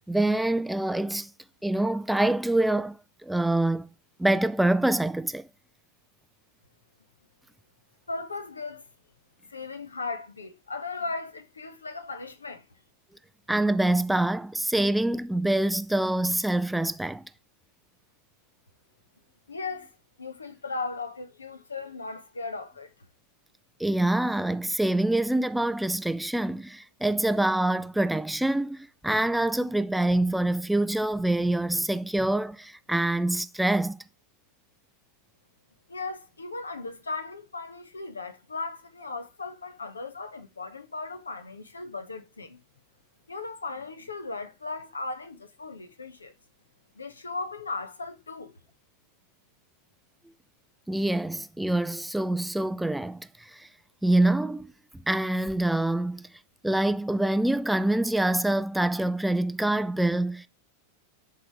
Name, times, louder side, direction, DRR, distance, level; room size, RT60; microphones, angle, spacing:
voice 1, 0.1-1.3 1.6-3.9 4.2-5.5 13.5-17.2 23.8-34.0 50.9-53.7 54.0-54.7 55.1-56.3 56.6-60.5, right 1 dB, 5° right, 0.4 m, -25 dB
voice 2, 8.1-8.9 9.4-12.6 19.5-19.9 20.2-22.9 35.9-42.6 43.3-46.3 46.9-48.6, left 3 dB, 75° left, 1.0 m, -37 dB
11.0 x 3.9 x 4.6 m
figure-of-eight pair, 90°, 0 cm